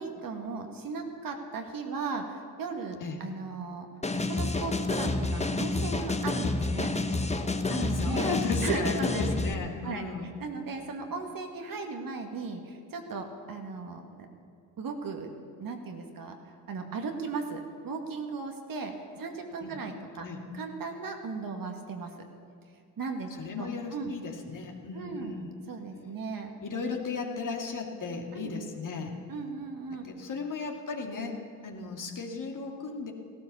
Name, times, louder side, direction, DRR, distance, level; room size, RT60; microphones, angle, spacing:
voice 1, 0.0-3.9 4.3-6.9 7.7-8.3 8.6-9.4 9.8-10.1 10.4-14.3 14.8-15.3 15.6-16.4 16.7-20.3 20.5-22.1 23.0-23.3 23.6-24.1 24.9-26.5 28.3-28.6 29.3-30.1, right 4 dB, 45° right, 4 dB, 2.2 m, -37 dB
sound 1, 4.0-9.5, left 2 dB, 15° left, 1.1 m, -29 dB
voice 2, 7.7-10.3 19.6-19.8 20.2-20.4 23.4-25.5 26.6-29.1 30.0-33.1, left 4 dB, 40° left, 2 dB, 2.6 m, -35 dB
16.5 x 12.5 x 7.0 m, 2.4 s
hypercardioid pair, 50°, 47 cm